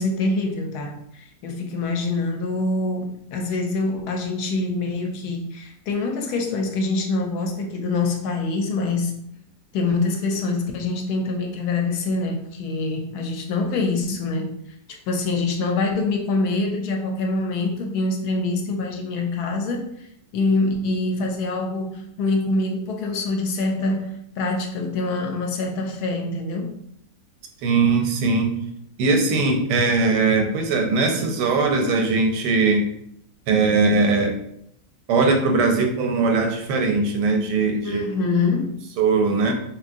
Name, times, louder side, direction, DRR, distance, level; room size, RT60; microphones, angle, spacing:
voice 1, 0.0-9.1 9.7-14.5 15.1-19.9 20.3-26.7 37.8-38.8, left 3 dB, 75° left, 2 dB, 1.1 m, -25 dB
voice 2, 27.6-28.6 29.0-32.8 33.5-34.4 35.1-38.0 39.0-39.5, right 3 dB, 85° right, 3 dB, 1.2 m, -20 dB
2.8 x 2.8 x 2.5 m, 0.73 s
omnidirectional pair, 1.8 m